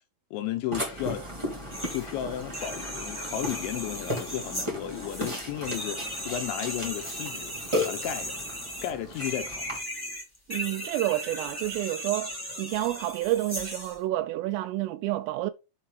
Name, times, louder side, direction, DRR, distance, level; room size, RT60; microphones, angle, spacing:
voice 1, 0.3-1.2 1.9-7.5 7.9-8.3 8.8-9.7, left 11 dB, 80° left, 2.8 m, -34 dB
Burping eructation, 0.7-9.8, left 1 dB, 10° right, 1.7 m, -35 dB
sound 1, 1.7-2.1 2.4-14.0, equal, 10° left, 1.4 m, -37 dB
voice 2, 10.5-12.3 12.6-15.5, right 15 dB, 85° right, 3.4 m, -29 dB
7.5 x 4.5 x 5.6 m
omnidirectional pair, 5.8 m